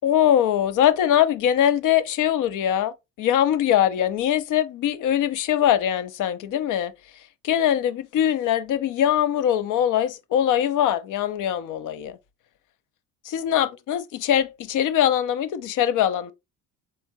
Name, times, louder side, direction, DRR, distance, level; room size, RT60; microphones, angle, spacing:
voice 1, 0.0-6.9 7.4-12.2 13.2-16.3, left 10 dB, 50° left, 0.7 m, -22 dB
4.3 x 3.6 x 2.6 m
hypercardioid pair, 70°, 39 cm